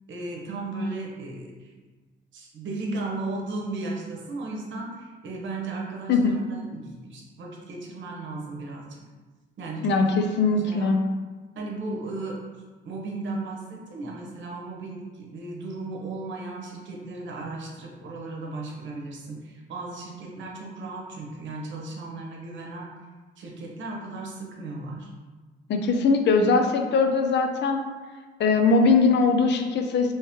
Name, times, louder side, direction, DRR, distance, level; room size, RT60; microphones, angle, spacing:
voice 1, 0.1-1.7 2.3-9.0 9.6-10.1 10.5-10.9 11.5-12.4 12.8-22.9 23.4-25.1, right 2 dB, 70° right, -1 dB, 0.9 m, -35 dB
voice 2, 9.8-11.0 25.7-27.9 28.4-30.1, left 4 dB, 60° left, 5 dB, 0.5 m, -21 dB
3.1 x 2.9 x 3.4 m, 1.3 s
cardioid pair, 90°, 20 cm